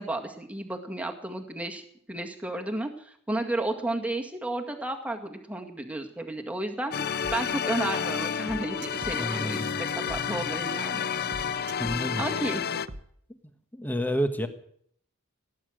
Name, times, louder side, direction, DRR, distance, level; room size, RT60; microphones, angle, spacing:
voice 1, 0.0-1.8 2.1-6.9 7.3-11.1 12.2-12.8, right 1 dB, 5° right, 3 dB, 1.9 m, -32 dB
sound 1, 6.9-12.9, left 7 dB, 50° left, 0.6 m, -30 dB
sound 2, 7.2-7.4 8.0-8.1 8.5-10.8 11.1-12.3 12.9-13.0, right 2 dB, 55° right, 1.2 m, -42 dB
voice 2, 9.1-9.8 11.8-12.3 13.3-13.4 13.7-14.5, equal, 10° left, 8 dB, 1.3 m, -30 dB
17.5 x 10.5 x 7.7 m, 0.66 s
head